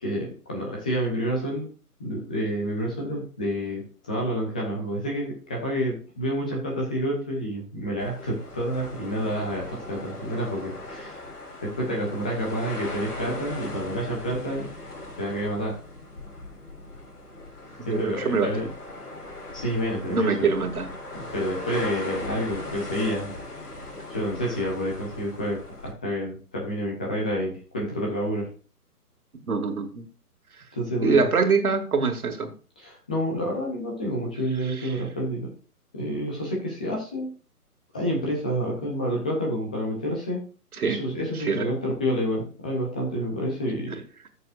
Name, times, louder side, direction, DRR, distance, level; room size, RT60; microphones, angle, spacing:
voice 1, 0.0-1.7 2.0-11.3 11.6-14.7 15.2-15.8 17.9-18.7 19.5-20.5 21.1-23.3 24.1-28.5 30.7-31.2 32.8-35.5 35.9-37.3 37.9-40.4 40.8-44.0, equal, 5° left, -2 dB, 0.5 m, -29 dB
sound 1, 8.0-25.9, left 2 dB, 80° left, 3.4 m, -38 dB
voice 2, 17.9-18.5 20.1-20.9 29.5-30.1 31.0-32.5 34.8-34.9 40.8-41.0 41.4-41.7, right 5 dB, 70° right, 6 dB, 2.1 m, -24 dB
13.0 x 6.8 x 2.5 m, 0.38 s
figure-of-eight pair, 140°, 46 cm